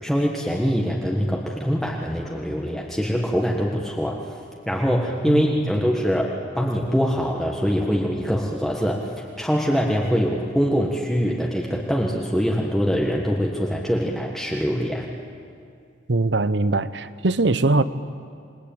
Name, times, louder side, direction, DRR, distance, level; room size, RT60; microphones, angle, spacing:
voice 1, 0.0-4.4 4.7-15.1, equal, ahead, -2 dB, 1.6 m, -23 dB
voice 2, 16.1-17.8, right 2 dB, 75° right, 14 dB, 0.9 m, -21 dB
28.0 x 20.5 x 8.9 m, 2.3 s
head